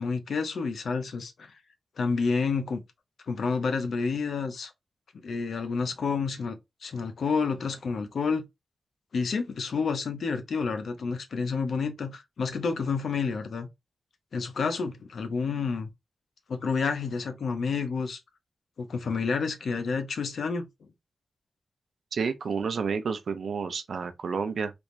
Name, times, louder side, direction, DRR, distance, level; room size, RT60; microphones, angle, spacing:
voice 1, 0.0-1.5 2.0-2.8 3.3-4.7 5.2-8.4 9.1-13.7 14.3-15.9 16.5-18.2 18.8-20.7, left 5 dB, 80° left, 0.7 m, -29 dB
voice 2, 22.1-24.7, right 5 dB, 75° right, 0.6 m, -30 dB
3.4 x 3.1 x 2.6 m
wide cardioid pair, 125°, 0 cm